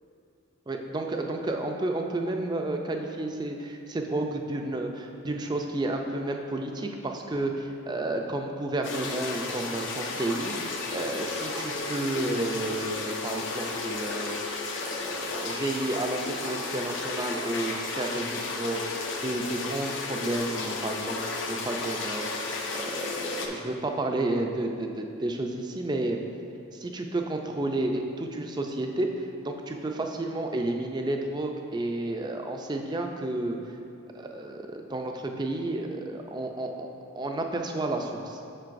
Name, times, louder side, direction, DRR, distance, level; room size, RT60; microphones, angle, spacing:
voice 1, 0.7-14.3 14.8-18.8 19.2-26.2 26.7-33.6 34.1-36.9 37.1-38.4, right 2 dB, 20° right, 3 dB, 0.4 m, -31 dB
sound 1, 8.8-23.5, left 3 dB, 60° left, 0.6 m, -33 dB
7.6 x 6.2 x 2.6 m, 2.6 s
head